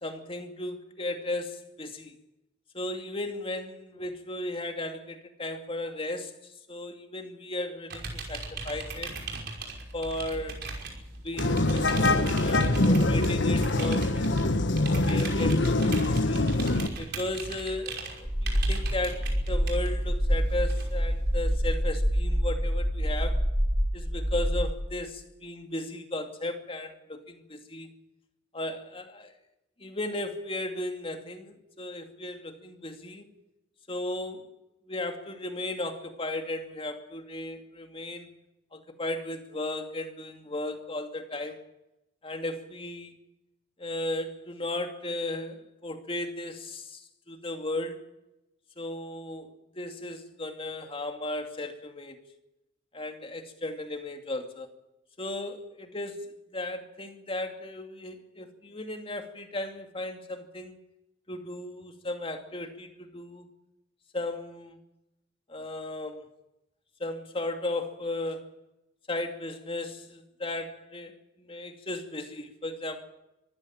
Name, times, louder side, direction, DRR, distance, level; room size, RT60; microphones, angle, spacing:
voice 1, 0.0-2.1 2.7-9.1 9.9-10.7 11.2-14.5 14.9-16.4 17.0-23.5 23.9-27.9 28.5-29.3 29.8-33.3 33.9-34.5 34.9-38.3 38.7-41.6 42.2-43.1 43.8-48.1 48.8-52.2 52.9-54.7 55.2-60.8 61.3-63.5 64.1-64.8 65.5-66.3 67.0-68.6 69.1-73.0, left 1 dB, 30° left, 2.5 m, -36 dB
sound 1, 7.9-21.6, right 3 dB, 55° right, 5.7 m, -40 dB
sound 2, 11.4-16.9, left 2 dB, 65° left, 1.5 m, -24 dB
sound 3, 18.3-24.7, equal, 5° right, 3.4 m, -26 dB
24.5 x 15.5 x 8.8 m
head